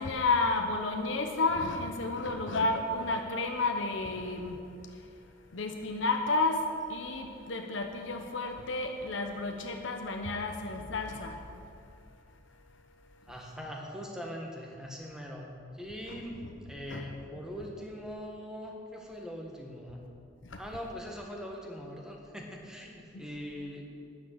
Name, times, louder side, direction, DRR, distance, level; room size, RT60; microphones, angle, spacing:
voice 1, 0.0-5.2 5.5-11.6 16.1-16.2 16.9-17.0 20.4-20.6 23.1-23.3, left 3 dB, 75° left, 4 dB, 0.9 m, -31 dB
voice 2, 13.3-16.4 16.6-20.0 20.6-23.9, equal, 5° right, 0 dB, 1.4 m, -41 dB
10.5 x 9.2 x 6.5 m, 2.5 s
head